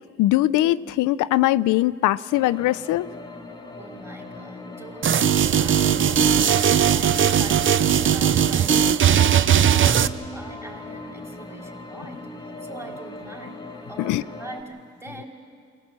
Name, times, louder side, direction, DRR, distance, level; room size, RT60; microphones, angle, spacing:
voice 1, 0.2-3.1 14.0-14.2, left 15 dB, 85° left, 16 dB, 0.5 m, -21 dB
sound 1, 2.3-14.6, left 2 dB, 15° left, 1.7 m, -40 dB
voice 2, 3.8-13.6 13.9-15.2, right 1 dB, 10° right, 0 dB, 3.6 m, -42 dB
sound 2, 5.0-10.1, right 9 dB, 40° right, 0.6 m, -18 dB
23.0 x 18.5 x 7.5 m, 2.4 s
cardioid pair, 90°, 30 cm